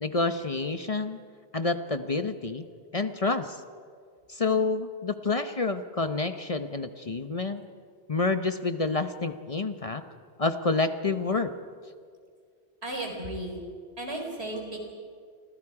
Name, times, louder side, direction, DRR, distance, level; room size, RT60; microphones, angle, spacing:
voice 1, 0.0-1.2 1.5-2.7 2.9-3.6 4.3-7.6 8.1-10.0 10.4-11.5, left 3 dB, 35° left, 9 dB, 0.9 m, -28 dB
voice 2, 12.8-13.6 14.0-14.9, right 1 dB, 80° right, 1 dB, 4.6 m, -34 dB
30.0 x 25.5 x 4.8 m, 2.1 s
omnidirectional pair, 1.1 m